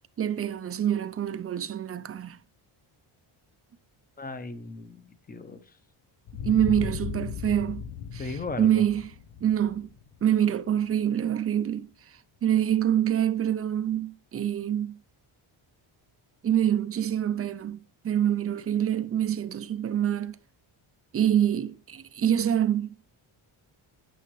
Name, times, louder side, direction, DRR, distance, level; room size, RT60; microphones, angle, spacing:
voice 1, 0.2-2.4 6.4-7.8 8.1-9.1 9.4-9.9 10.2-15.0 16.4-20.4 21.1-23.0, right 10 dB, 30° right, 0.5 m, -26 dB
voice 2, 4.2-5.6 8.2-8.8, left 3 dB, 20° left, 0.7 m, -37 dB
sound 1, 6.3-10.9, left 7 dB, 55° left, 0.7 m, -37 dB
12.5 x 10.0 x 3.1 m
wide cardioid pair, 180°, 49 cm